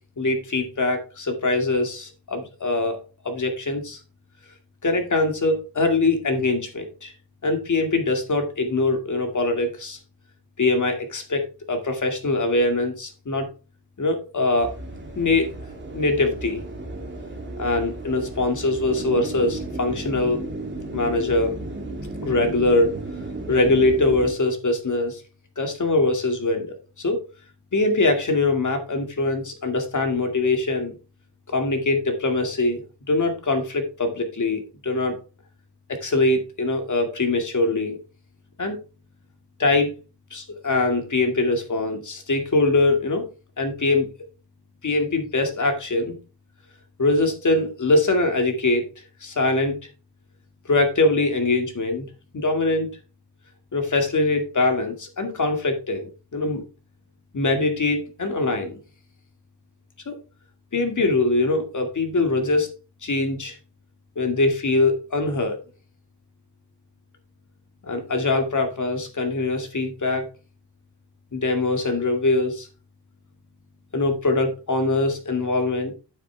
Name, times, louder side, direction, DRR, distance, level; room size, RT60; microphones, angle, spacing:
voice 1, 0.2-3.0 3.2-4.0 4.8-7.1 7.4-10.0 10.6-11.4 11.7-13.5 14.0-14.7 15.2-15.5 15.9-16.6 17.6-20.4 20.9-21.5 22.2-23.0 23.5-25.2 25.6-27.2 27.7-30.9 31.5-32.8 33.1-35.1 36.0-38.0 38.6-38.8 39.6-39.9 40.3-43.2 43.6-44.1 44.8-46.2 47.0-48.8 49.2-49.8 50.7-52.1 52.3-52.9 53.7-56.6 57.3-58.8 60.1-60.2 60.7-62.7 63.0-63.5 64.2-65.6 67.8-70.2 71.3-72.7 73.9-75.9, left 2 dB, 45° left, 5 dB, 2.3 m, -22 dB
sound 1, 14.6-24.3, right 2 dB, 25° right, 2.5 m, -34 dB
8.9 x 7.7 x 3.4 m, 0.32 s
wide cardioid pair, 110°, 42 cm